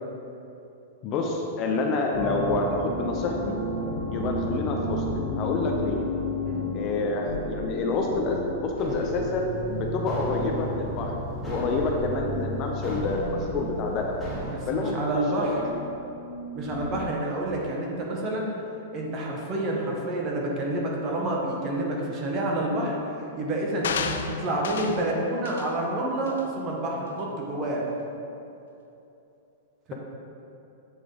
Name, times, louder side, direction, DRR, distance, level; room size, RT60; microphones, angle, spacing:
voice 1, 1.0-3.5 4.1-6.0 6.7-11.2 11.4-14.1 14.7-15.5, left 3 dB, 30° left, 1 dB, 0.5 m, -28 dB
sound 1, 2.1-17.2, left 1 dB, 60° left, 1.3 m, -33 dB
sound 2, 8.8-14.5, equal, 5° left, 1.5 m, -39 dB
voice 2, 14.5-15.6 16.5-18.5 18.9-27.8 29.9-30.0, right 1 dB, 30° right, -2 dB, 0.9 m, -28 dB
sound 3, 23.8-25.1 25.5-25.7 26.3-26.4, left 7 dB, 85° left, 0.3 m, -32 dB
7.9 x 3.3 x 3.8 m, 2.8 s
supercardioid pair, 150°, 0 cm